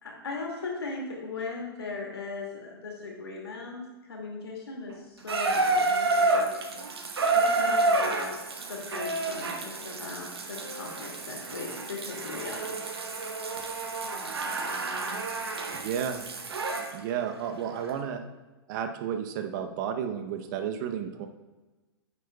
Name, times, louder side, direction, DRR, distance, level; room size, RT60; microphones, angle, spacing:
voice 1, 0.0-6.5 7.3-12.8, left 3 dB, 85° left, -1 dB, 2.3 m, -38 dB
Water tap faucet / Bathtub (filling or washing), 5.3-16.9 17.8-17.9, right 3 dB, 85° right, 1.1 m, -29 dB
voice 2, 15.7-16.3 16.9-18.2 18.7-21.3, right 8 dB, 50° right, 7 dB, 0.8 m, -32 dB
9.3 x 8.2 x 2.3 m, 1.2 s
hypercardioid pair, 115°, 13 cm